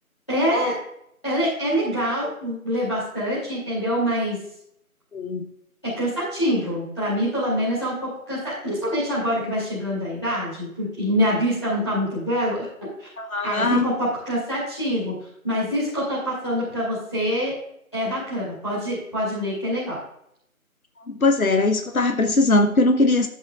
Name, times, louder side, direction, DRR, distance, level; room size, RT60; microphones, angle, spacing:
voice 1, 0.3-0.7 1.2-4.4 5.8-12.7 13.0-13.1 13.4-15.1 15.4-17.5 17.9-20.0, equal, 20° left, -10 dB, 2.4 m, -25 dB
voice 2, 5.1-5.5 13.2-13.9 21.1-23.3, left 2 dB, 70° left, 6 dB, 1.0 m, -20 dB
12.0 x 7.5 x 2.4 m, 0.73 s
figure-of-eight pair, 180°, 44 cm